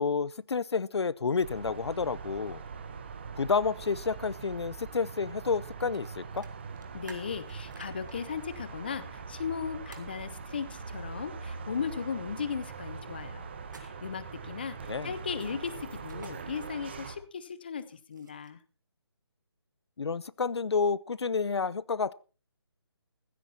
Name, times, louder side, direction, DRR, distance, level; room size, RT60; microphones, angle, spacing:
voice 1, 0.0-2.6 3.4-6.5 14.9-15.1 20.0-22.1, left 5 dB, 80° left, 21 dB, 0.6 m, -30 dB
sound 1, 1.4-17.2, right 5 dB, 25° right, 1.2 m, -42 dB
sound 2, 5.9-6.1 6.4-8.2 9.9-10.1 13.6-14.2 15.9-16.3 17.7-18.6, right 4 dB, 45° right, 2.3 m, -51 dB
voice 2, 6.9-13.5 13.7-14.8 15.0-18.6, left 6 dB, 25° left, 14 dB, 0.6 m, -37 dB
15.5 x 12.5 x 4.2 m, 0.36 s
hypercardioid pair, 175°, 14 cm